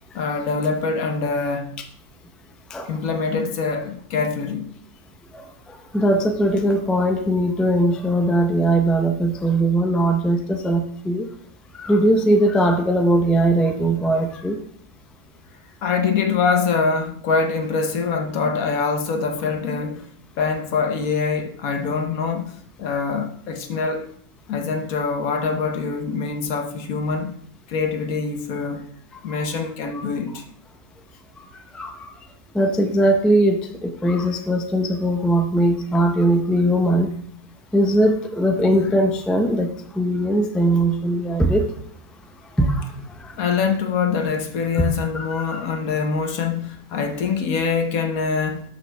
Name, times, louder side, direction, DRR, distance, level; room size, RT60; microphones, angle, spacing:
voice 1, 0.1-1.7 2.9-4.7 6.8-6.9 15.8-20.0 20.4-24.1 24.5-27.3 27.7-28.9 29.2-30.4 38.5-38.9 43.4-48.6, left 5 dB, 70° left, 1.4 m, -24 dB
voice 2, 5.3-11.3 11.7-14.6 29.3-29.4 29.9-30.0 31.7-32.1 32.5-37.1 37.7-41.7 42.6-42.9 43.2-43.4 44.8-44.9 45.1-45.6, right 1 dB, ahead, 0.4 m, -20 dB
12.5 x 5.7 x 3.4 m
omnidirectional pair, 1.6 m